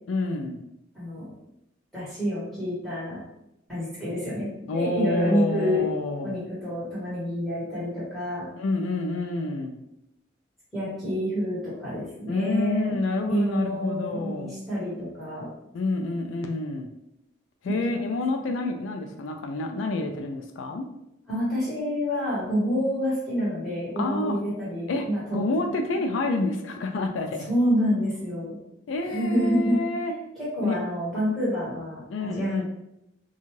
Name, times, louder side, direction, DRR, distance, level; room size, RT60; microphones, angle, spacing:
voice 1, 0.1-0.6 4.7-6.4 8.6-9.8 12.3-14.6 15.7-16.9 17.6-20.9 24.0-24.4 24.9-25.1 25.3-27.5 28.9-30.1 30.6-30.8 32.1-32.6, left 2 dB, 80° left, 4 dB, 0.3 m, -28 dB
voice 2, 0.9-1.2 1.9-3.2 3.7-5.8 6.1-8.5 10.7-13.0 13.2-15.5 17.7-17.9 21.3-25.4 27.5-28.6 29.0-29.8 30.4-32.6, equal, ahead, -11 dB, 1.3 m, -28 dB
2.6 x 2.3 x 3.1 m, 0.82 s
head